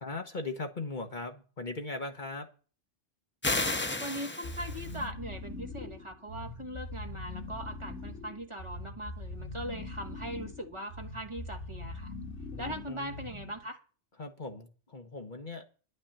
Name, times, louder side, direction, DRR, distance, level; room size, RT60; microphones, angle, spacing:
voice 1, 0.0-2.5 12.5-13.2 14.2-15.7, left 3 dB, 45° left, 1.3 m, -39 dB
sound 1, 3.4-5.0, left 2 dB, 15° left, 0.4 m, -32 dB
voice 2, 4.0-12.1 12.6-13.8, right 1 dB, 25° right, 1.4 m, -40 dB
sound 2, 4.4-13.7, left 2 dB, 80° left, 2.1 m, -42 dB
11.0 x 5.6 x 8.8 m
omnidirectional pair, 1.2 m